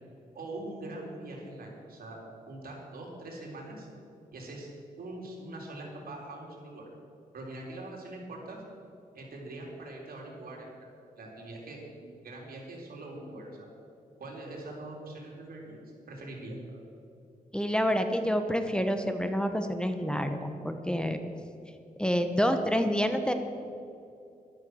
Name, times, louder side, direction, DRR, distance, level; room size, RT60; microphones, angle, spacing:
voice 1, 0.3-2.2 2.5-3.9 4.3-4.7 5.0-6.9 7.3-8.6 9.1-10.7 11.2-13.7 14.2-15.8 16.1-16.8, right 2 dB, 85° right, -1 dB, 3.9 m, -42 dB
voice 2, 17.5-21.2 22.0-23.3, equal, 5° left, 7 dB, 1.1 m, -28 dB
13.5 x 12.0 x 6.3 m, 2.6 s
wide cardioid pair, 100°, 15 cm